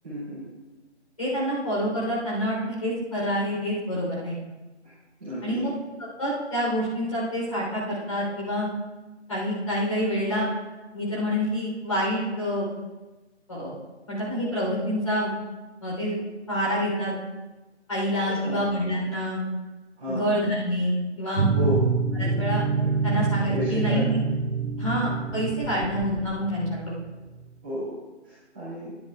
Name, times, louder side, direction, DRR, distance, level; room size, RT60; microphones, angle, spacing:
voice 1, 0.0-0.4 5.2-5.6 18.2-18.6 20.0-20.3 21.5-21.8 22.2-22.5 23.5-24.1 25.7-25.8 27.6-27.9 28.2-28.9, equal, 10° right, -16 dB, 2.7 m, -32 dB
voice 2, 1.2-4.3 5.4-5.7 6.2-8.7 9.3-10.5 10.9-12.7 13.5-13.7 14.1-15.3 15.8-16.2 16.5-17.1 17.9-19.4 20.1-21.5 22.2-22.6 23.0-24.2 24.8-27.0, equal, 30° left, -6 dB, 3.6 m, -27 dB
sound 1, 21.4-27.3, right 4 dB, 80° right, 0.7 m, -26 dB
16.5 x 10.5 x 2.4 m, 1.1 s
figure-of-eight pair, 175°, 35 cm